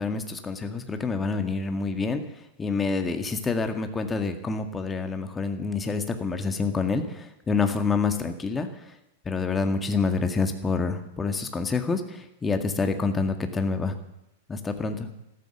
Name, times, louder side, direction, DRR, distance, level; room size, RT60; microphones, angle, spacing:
voice 1, 0.0-2.2 2.6-9.0 9.3-14.0 14.5-15.1, left 4 dB, 15° left, 6 dB, 2.0 m, -27 dB
14.0 x 13.0 x 7.2 m, 0.87 s
figure-of-eight pair, 100°, 0 cm